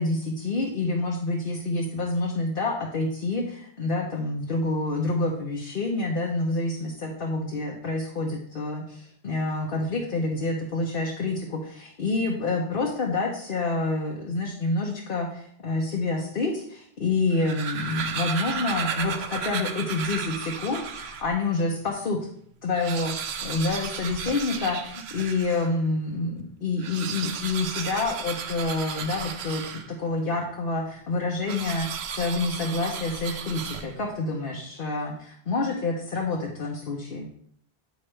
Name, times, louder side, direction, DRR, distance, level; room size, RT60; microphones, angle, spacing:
voice 1, 0.0-22.2 22.6-23.1 23.4-37.3, left 3 dB, 60° left, -1 dB, 1.1 m, -28 dB
sound 1, 17.2-21.4 21.9-22.0 22.2-22.3 22.6-25.8 26.7-30.2 31.5-34.2, right 6 dB, 85° right, 0.9 m, -34 dB
9.4 x 4.9 x 3.3 m, 0.65 s
omnidirectional pair, 1.1 m